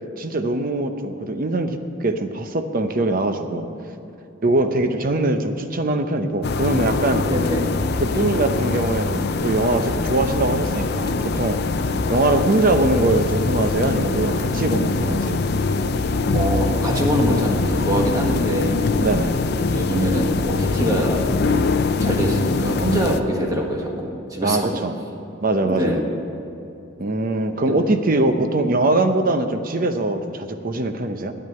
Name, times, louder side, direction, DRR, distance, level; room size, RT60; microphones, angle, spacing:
voice 1, 0.2-3.7 4.4-7.2 8.0-11.6 12.1-15.4 19.0-19.4 24.4-24.9 25.4-26.0 27.0-31.3, right 2 dB, 45° right, 7 dB, 0.8 m, -22 dB
sound 1, 6.4-23.2, left 3 dB, 55° left, 0.5 m, -23 dB
voice 2, 7.3-7.6 16.3-18.8 19.7-21.2 22.0-24.7 25.6-26.0 27.5-27.8, equal, 20° right, -1 dB, 1.5 m, -23 dB
9.6 x 8.9 x 8.7 m, 2.8 s
head